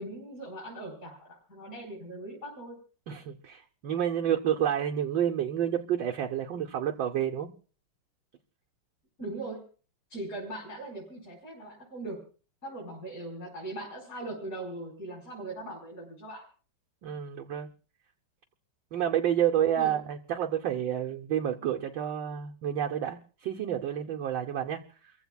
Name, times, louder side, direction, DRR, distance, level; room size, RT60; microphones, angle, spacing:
voice 1, 0.0-2.8 9.2-9.6 10.1-12.2 12.6-16.4 19.8-20.0, right 2 dB, 40° left, 5.2 m, -40 dB
voice 2, 3.1-7.5 17.0-17.7 18.9-25.1, right 10 dB, 65° right, 1.5 m, -29 dB
29.5 x 15.5 x 2.3 m
omnidirectional pair, 2.3 m